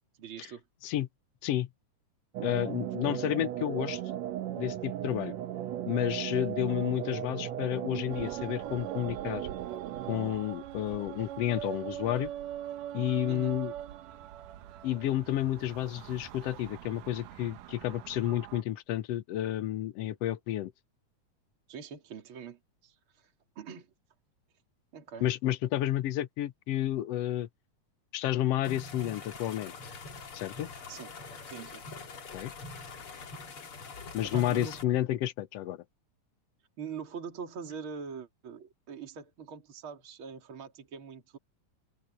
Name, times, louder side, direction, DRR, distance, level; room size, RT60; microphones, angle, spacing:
voice 1, 0.2-0.6 13.3-13.5 21.7-22.9 23.5-23.9 24.9-25.2 30.9-31.1 31.5-31.8 34.2-35.0 36.8-41.4, right 6 dB, 40° right, 3.4 m, -43 dB
sound 1, 2.3-10.3, right 11 dB, 70° right, 2.0 m, -36 dB
voice 2, 2.4-4.0 4.6-5.3 5.9-9.5 10.1-12.3 12.9-13.7 14.8-20.7 25.2-27.5 28.1-29.8 30.3-30.7 32.3-32.5 34.1-35.8, left 13 dB, 65° left, 1.7 m, -31 dB
sound 2, 8.1-18.6, right 12 dB, 85° right, 2.6 m, -42 dB
sound 3, 28.6-34.8, left 4 dB, 45° left, 3.2 m, -44 dB
open air
omnidirectional pair, 3.7 m